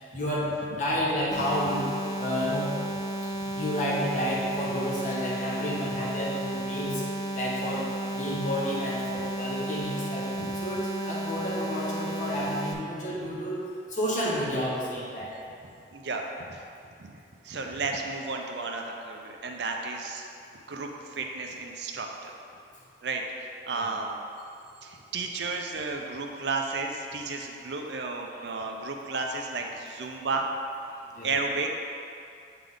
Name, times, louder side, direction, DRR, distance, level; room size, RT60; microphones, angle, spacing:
voice 1, 0.1-0.5 0.8-1.9 2.2-2.7 3.5-7.0 7.3-7.9 8.1-10.3 10.6-13.6 13.9-15.3 23.7-23.8 31.1-31.3, equal, 45° left, -6 dB, 1.2 m, -30 dB
sound 1, 1.3-12.7, right 1 dB, 20° left, 0.4 m, -33 dB
voice 2, 15.9-16.6 17.0-17.2 17.4-20.2 20.7-22.4 23.0-24.1 24.8-30.5 31.2-31.8, right 3 dB, 75° right, 2 dB, 0.6 m, -33 dB
7.4 x 3.5 x 3.8 m, 2.4 s
head